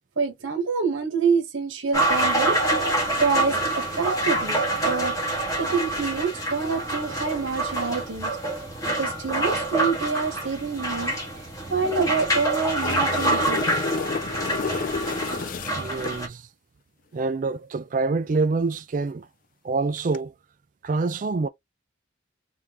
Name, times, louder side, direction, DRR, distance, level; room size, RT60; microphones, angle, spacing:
voice 1, 0.2-5.2 5.6-8.4 9.0-11.1 11.7-13.7, right 5 dB, 90° right, 1.2 m, -27 dB
sound 1, 1.9-16.3, right 2 dB, 20° left, 1.6 m, -26 dB
sound 2, 12.5-16.2 20.0-20.2, left 5 dB, 45° left, 0.4 m, -30 dB
voice 2, 15.7-16.5 17.1-19.3 19.6-20.3 20.8-21.5, right 3 dB, 45° right, 0.4 m, -26 dB
3.7 x 3.3 x 2.9 m
head